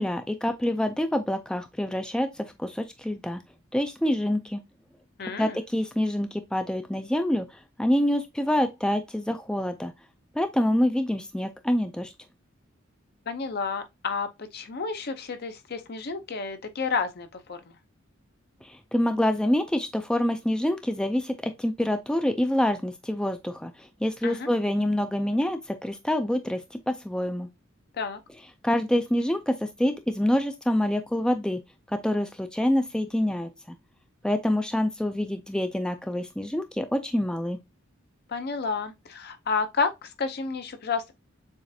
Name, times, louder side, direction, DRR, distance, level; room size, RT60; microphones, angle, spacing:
voice 1, 0.0-3.4 3.7-4.6 5.3-7.5 7.8-9.9 10.4-12.1 18.6-26.6 26.9-27.5 28.6-31.6 31.9-33.8 34.2-37.6, left 1 dB, 5° left, 0.3 m, -26 dB
voice 2, 5.2-5.6 13.3-17.8 24.2-24.5 27.9-28.2 38.3-41.1, left 4 dB, 50° left, 0.7 m, -31 dB
7.0 x 2.5 x 2.7 m
head